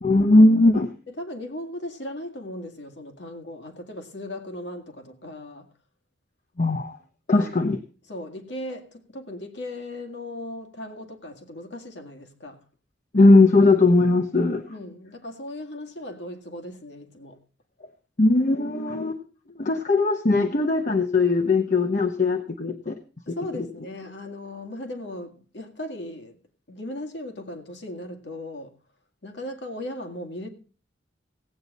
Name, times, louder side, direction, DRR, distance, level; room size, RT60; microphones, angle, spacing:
voice 1, 0.0-0.9 6.6-7.0 7.3-7.8 13.1-14.6 18.2-19.2 19.6-23.0, left 2 dB, 45° left, 0.9 m, -19 dB
voice 2, 1.1-5.7 7.3-7.7 8.1-12.6 14.7-17.4 23.3-26.4 26.7-28.8 29.2-30.5, left 1 dB, 70° left, 2.0 m, -37 dB
17.5 x 8.7 x 4.0 m
head